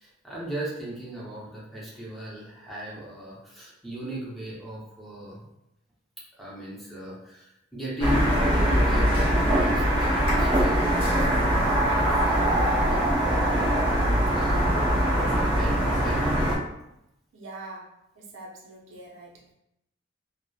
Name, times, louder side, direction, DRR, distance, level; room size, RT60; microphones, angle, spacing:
voice 1, 0.2-5.4 6.4-13.1 14.3-14.7 15.4-16.2, equal, ahead, -7 dB, 0.6 m, -37 dB
sound 1, 8.0-16.6, equal, 25° right, 1.0 m, -22 dB
voice 2, 17.3-19.4, right 2 dB, 90° right, -1 dB, 0.6 m, -44 dB
2.8 x 2.0 x 2.2 m, 0.83 s
head